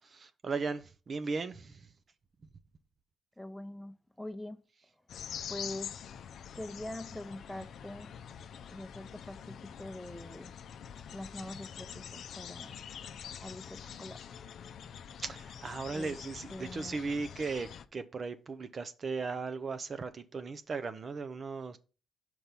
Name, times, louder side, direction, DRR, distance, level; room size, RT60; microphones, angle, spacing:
voice 1, 0.1-1.9 15.2-21.8, right 4 dB, 40° right, 0.5 m, -37 dB
voice 2, 3.4-4.6 5.5-5.9 6.6-8.1 8.7-10.5 11.1-12.8 13.4-14.2 15.9-16.1 16.5-17.0, left 1 dB, ahead, 0.7 m, -44 dB
sound 1, 5.1-17.8, left 8 dB, 65° left, 0.5 m, -45 dB
5.2 x 4.6 x 5.7 m
cardioid pair, 90°, 0 cm